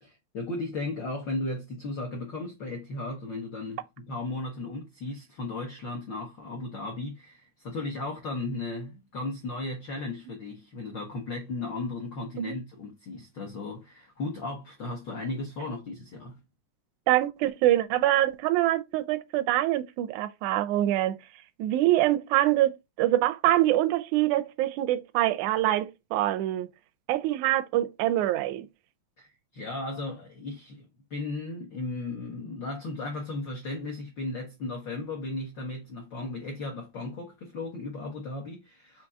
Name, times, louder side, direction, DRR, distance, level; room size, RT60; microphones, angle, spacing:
voice 1, 0.0-16.4 29.2-39.1, left 2 dB, 70° left, 1.0 m, -36 dB
voice 2, 17.1-21.2 21.6-26.7 27.1-28.7, right 14 dB, 85° right, 1.9 m, -25 dB
5.2 x 2.9 x 3.5 m
omnidirectional pair, 3.4 m